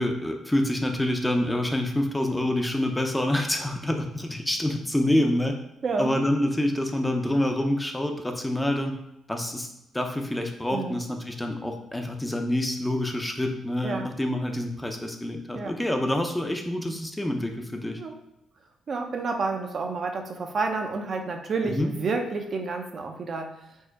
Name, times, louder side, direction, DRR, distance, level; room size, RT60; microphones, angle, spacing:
voice 1, 0.0-5.6 6.0-9.0 9.3-9.7 9.9-18.0 21.6-21.9, left 1 dB, 10° left, 4 dB, 0.5 m, -27 dB
voice 2, 5.8-6.2 10.7-11.0 13.8-14.1 15.5-15.8 18.0-18.2 18.9-23.6, right 4 dB, 50° right, 4 dB, 0.6 m, -29 dB
4.4 x 2.1 x 4.5 m, 0.86 s
cardioid pair, 90°, 0 cm